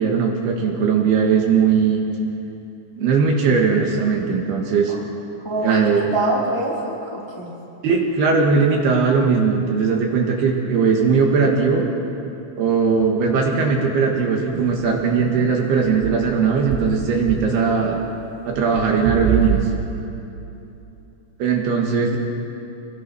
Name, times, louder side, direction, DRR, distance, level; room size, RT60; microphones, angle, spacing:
voice 1, 0.0-2.0 3.0-4.9 5.6-6.1 7.8-11.9 12.6-18.0 18.5-19.6 21.4-22.2, right 5 dB, 65° right, 1 dB, 3.2 m, -19 dB
voice 2, 5.4-7.5, right 1 dB, 10° left, -3 dB, 1.6 m, -25 dB
sound 1, 14.5-15.5 15.9-17.5 17.8-18.2 18.5-19.7, right 6 dB, 85° right, 4.0 m, -27 dB
26.5 x 22.0 x 6.0 m, 2.9 s
omnidirectional pair, 5.7 m